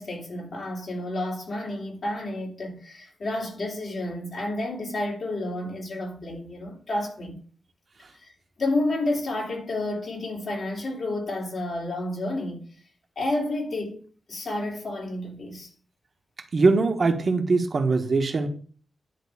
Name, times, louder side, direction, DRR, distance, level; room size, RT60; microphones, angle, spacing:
voice 1, 0.0-7.4 8.2-8.3 8.6-12.7 13.1-15.7, left 2 dB, 60° left, 3.2 m, -30 dB
voice 2, 16.5-18.5, right 3 dB, 50° right, 1.4 m, -22 dB
10.5 x 3.7 x 7.0 m
wide cardioid pair, 115°, 0 cm